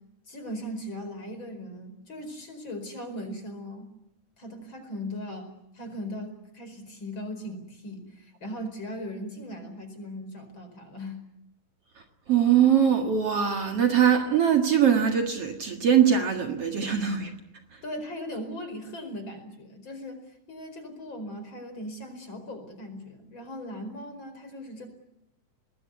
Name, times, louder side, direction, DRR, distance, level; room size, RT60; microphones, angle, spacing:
voice 1, 0.3-3.9 4.4-5.5 5.7-11.2 17.8-24.9, equal, 35° left, 7 dB, 5.5 m, -38 dB
voice 2, 12.3-17.3, right 8 dB, 55° right, 4 dB, 2.6 m, -22 dB
24.5 x 20.5 x 9.5 m, 0.81 s
omnidirectional pair, 3.5 m